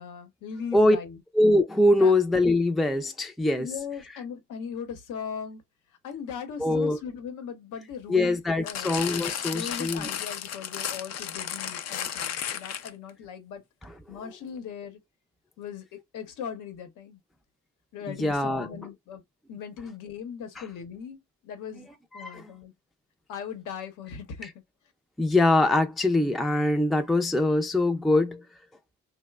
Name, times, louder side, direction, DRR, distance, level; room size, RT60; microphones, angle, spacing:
voice 1, 0.0-1.2 2.0-2.1 3.6-5.6 6.0-9.0 9.5-13.6 14.1-15.0 15.6-17.2 17.9-19.2 19.5-21.2 21.4-22.7 23.3-24.5, left 7 dB, 85° left, 0.9 m, -39 dB
voice 2, 1.3-3.7 6.6-7.0 8.1-10.1 18.2-18.7 20.6-20.7 22.1-22.5 25.2-28.4, left 2 dB, ahead, 0.4 m, -23 dB
sound 1, 8.7-13.1 13.8-13.9, left 9 dB, 60° left, 0.5 m, -33 dB
3.0 x 2.1 x 2.3 m
cardioid pair, 90°, 30 cm